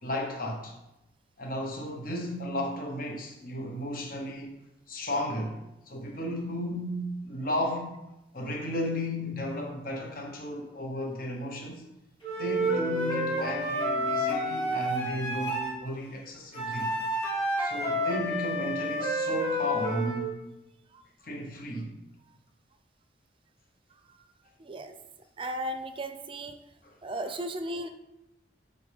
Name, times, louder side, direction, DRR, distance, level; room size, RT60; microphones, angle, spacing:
voice 1, 0.0-0.7 1.4-4.5 4.9-5.6 5.9-7.9 8.3-11.9 12.3-16.9 17.6-20.4 21.2-21.9, left 1 dB, 50° left, 1 dB, 1.1 m, -34 dB
Wind instrument woodwind instrument, 12.2-15.7 16.5-20.3, equal, 30° left, 2.1 m, -30 dB
sound 1, 12.6-15.8, right 1 dB, 5° left, 1.8 m, -41 dB
voice 2, 24.6-24.9 25.4-26.6 27.0-27.9, right 1 dB, 30° right, 7 dB, 0.5 m, -35 dB
8.3 x 4.2 x 3.5 m, 0.91 s
head